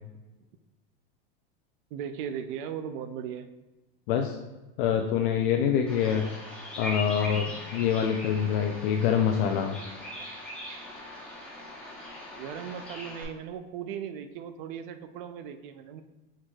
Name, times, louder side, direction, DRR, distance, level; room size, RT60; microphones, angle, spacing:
voice 1, 1.9-3.5 12.4-16.0, right 8 dB, 65° right, 9 dB, 0.4 m, -37 dB
voice 2, 4.1-4.4 4.8-6.3 6.8-9.8, left 8 dB, 65° left, 3 dB, 0.5 m, -25 dB
Bird vocalization bird call bird song, 5.9-13.2, left 1 dB, 5° left, 0.8 m, -40 dB
4.7 x 4.3 x 2.3 m, 1.1 s
supercardioid pair, 150°, 29 cm